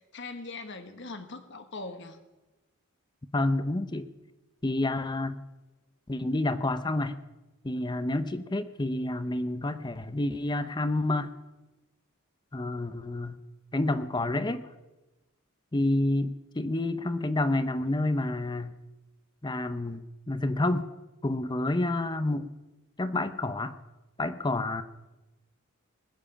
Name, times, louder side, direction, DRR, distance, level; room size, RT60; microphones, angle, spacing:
voice 1, 0.0-2.2, left 3 dB, 55° left, 9 dB, 1.3 m, -41 dB
voice 2, 3.3-4.1 4.6-5.4 6.1-7.2 7.6-11.3 12.5-13.4 13.7-14.7 15.7-18.7 19.4-20.9 21.2-22.5 23.0-23.7 24.2-24.8, left 2 dB, 20° left, 12 dB, 0.6 m, -29 dB
20.0 x 7.4 x 8.6 m, 1.1 s
head